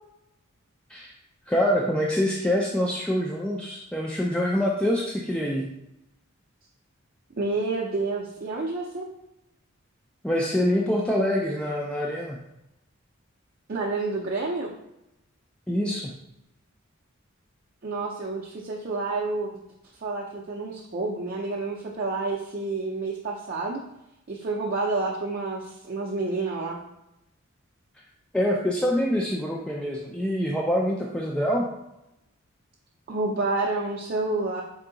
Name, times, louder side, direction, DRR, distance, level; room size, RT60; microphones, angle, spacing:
voice 1, 1.5-5.7 10.2-12.4 15.7-16.2 28.3-31.7, equal, 5° left, -2 dB, 0.3 m, -25 dB
voice 2, 7.4-9.1 13.7-14.7 17.8-19.5 20.0-23.8 24.3-26.8 33.1-34.6, right 3 dB, 45° right, -3 dB, 0.5 m, -29 dB
4.6 x 2.7 x 3.8 m, 0.87 s
head